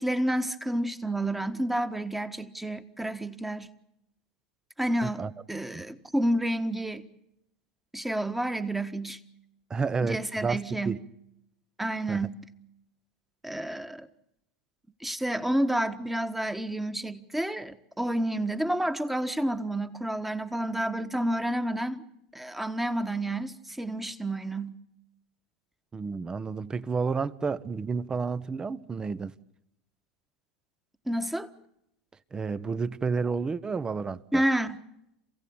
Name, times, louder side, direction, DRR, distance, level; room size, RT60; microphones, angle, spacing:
voice 1, 0.0-3.7 4.8-7.1 7.9-9.2 10.0-11.0 11.8-12.4 13.4-14.1 15.0-22.0 22.3-24.8 31.1-31.5 34.3-34.8, right 1 dB, 5° right, 1.6 m, -30 dB
voice 2, 9.7-11.0 12.1-12.3 25.9-29.3 32.3-34.4, right 5 dB, 20° right, 1.0 m, -31 dB
27.5 x 16.5 x 8.7 m
hypercardioid pair, 90°, 3 cm